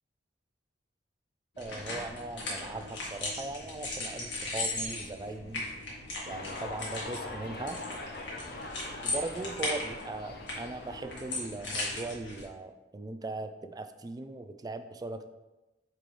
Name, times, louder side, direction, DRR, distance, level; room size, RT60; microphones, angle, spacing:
sound 1, 1.6-12.4, left 2 dB, 85° left, 1.8 m, -38 dB
voice 1, 1.6-5.7 6.3-7.8 9.0-15.3, right 2 dB, 20° right, 9 dB, 0.3 m, -39 dB
sound 2, 6.3-11.5, left 2 dB, 60° left, 0.9 m, -43 dB
7.9 x 3.8 x 3.3 m, 1.1 s
head